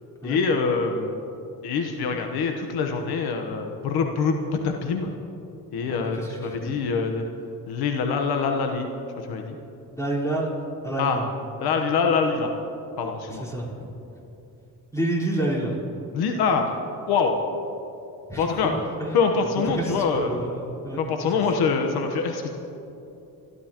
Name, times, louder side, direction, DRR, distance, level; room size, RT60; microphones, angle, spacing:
voice 1, 0.2-1.1 1.6-4.3 4.6-5.1 5.7-7.2 7.7-8.9 9.3-9.6 11.0-11.2 11.6-12.5 13.0-13.4 16.1-16.7 17.1-17.4 18.4-18.7 19.1-20.4 21.0-22.5, left 5 dB, 80° left, 4 dB, 1.2 m, -24 dB
voice 2, 5.9-6.7 9.9-10.5 10.8-11.2 13.3-13.7 14.9-15.8 18.3-19.2 19.8-21.4, right 1 dB, 10° left, -4 dB, 4.4 m, -29 dB
29.0 x 12.5 x 3.0 m, 2.8 s
cardioid pair, 90°, 37 cm